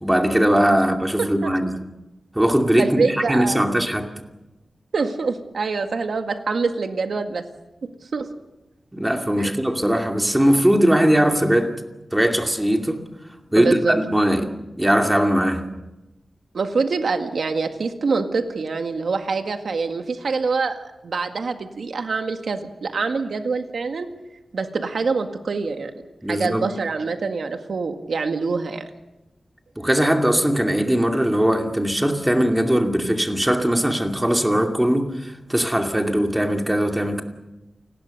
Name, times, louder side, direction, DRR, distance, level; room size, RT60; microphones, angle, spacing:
voice 1, 0.0-1.7 2.3-4.1 8.9-11.8 12.1-13.0 13.5-15.7 26.2-26.7 29.8-37.2, equal, 10° right, 2.5 m, -20 dB
voice 2, 1.2-1.5 2.8-3.8 4.9-7.4 8.0-8.3 9.4-9.5 13.6-14.0 16.5-24.1 24.5-25.9 26.3-28.8, right 4 dB, 75° right, 1.9 m, -25 dB
28.5 x 20.0 x 6.6 m
wide cardioid pair, 125°, 0 cm